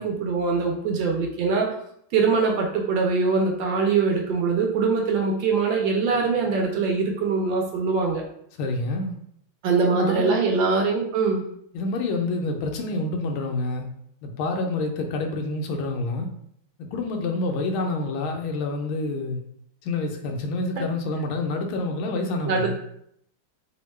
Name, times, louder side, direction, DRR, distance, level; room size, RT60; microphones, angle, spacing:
voice 1, 0.0-1.8 2.1-8.2 9.6-11.5 20.8-20.9 22.5-22.8, right 4 dB, 75° right, 1 dB, 1.2 m, -23 dB
voice 2, 8.6-9.1 9.9-10.4 11.7-13.9 14.2-16.3 16.8-19.4 19.8-22.7, left 2 dB, 85° left, 3 dB, 1.4 m, -27 dB
3.4 x 2.1 x 3.1 m, 0.70 s
omnidirectional pair, 2.3 m